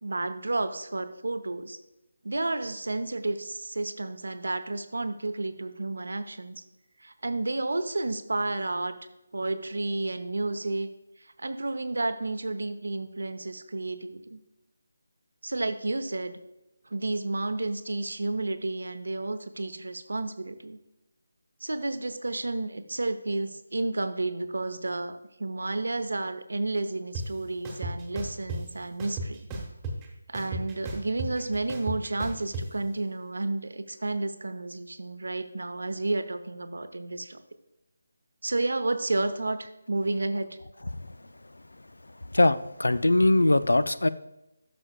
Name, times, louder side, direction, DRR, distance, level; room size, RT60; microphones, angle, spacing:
voice 1, 0.0-1.8 2.2-6.6 7.0-9.0 9.3-10.9 11.4-14.4 15.4-16.4 16.9-20.8 21.6-29.4 30.3-37.4 38.4-40.6, right 2 dB, 70° right, 10 dB, 0.7 m, -31 dB
sound 1, 27.1-27.2 27.6-28.6 29.0-30.1 30.3-32.6, right 2 dB, 15° right, 1.1 m, -34 dB
voice 2, 42.3-44.1, left 2 dB, 80° left, 15 dB, 0.4 m, -21 dB
12.0 x 6.1 x 2.3 m, 0.94 s
figure-of-eight pair, 155°, 0 cm